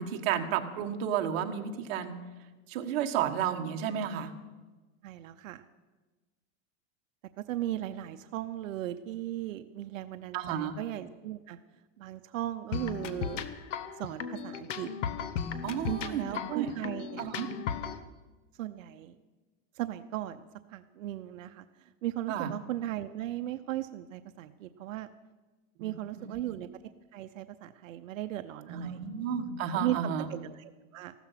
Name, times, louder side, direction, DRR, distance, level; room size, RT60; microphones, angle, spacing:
voice 1, 0.0-2.2 2.7-4.3 10.3-10.7 15.6-16.7 17.2-17.5 22.3-22.5 25.8-25.9 26.2-26.4 28.7-30.3, right 8 dB, 50° right, 4 dB, 1.5 m, -32 dB
voice 2, 5.0-5.6 7.4-11.6 12.0-13.4 14.0-14.9 15.9-17.3 18.6-19.2 19.7-25.1 25.8-26.7 27.1-29.1 29.7-31.1, right 13 dB, 90° right, 10 dB, 0.8 m, -37 dB
sound 1, 12.7-18.0, left 7 dB, 70° left, 1.2 m, -36 dB
15.0 x 13.0 x 5.8 m, 1.2 s
supercardioid pair, 160°, 38 cm